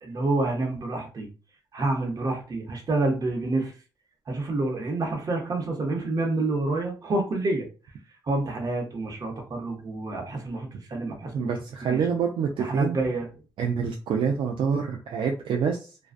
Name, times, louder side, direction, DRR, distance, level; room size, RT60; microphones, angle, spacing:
voice 1, 0.0-1.3 1.7-3.7 4.3-7.6 8.3-11.5 11.8-12.0 12.6-13.3, right 2 dB, 45° right, 2 dB, 0.8 m, -28 dB
voice 2, 11.3-13.0 13.6-15.9, right 6 dB, 70° right, 1 dB, 0.4 m, -26 dB
2.4 x 2.2 x 2.4 m, 0.34 s
cardioid pair, 85°, 9 cm